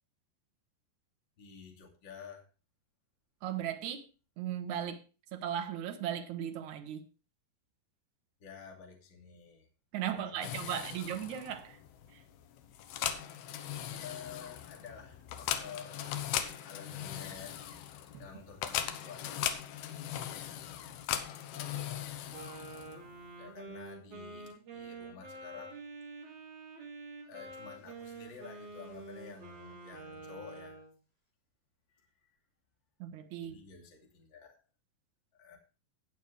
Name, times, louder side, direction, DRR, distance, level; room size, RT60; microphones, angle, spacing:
voice 1, 1.4-2.4 8.4-9.7 10.1-11.0 14.0-17.6 18.2-20.0 21.3-22.3 23.4-25.8 27.2-30.8 31.9-32.3 33.4-34.5 35.4-35.6, left 6 dB, 30° left, 2.6 m, -51 dB
voice 2, 3.4-4.1 4.4-5.0 5.3-7.0 9.9-11.8 12.1-12.2 18.1-18.3 33.0-33.6, right 10 dB, 80° right, 1.7 m, -37 dB
sound 1, 10.4-23.1, left 10 dB, 75° left, 2.7 m, -39 dB
Wind instrument woodwind instrument, 22.3-30.9, right 3 dB, 45° right, 4.9 m, -47 dB
18.5 x 6.6 x 3.3 m
omnidirectional pair, 5.0 m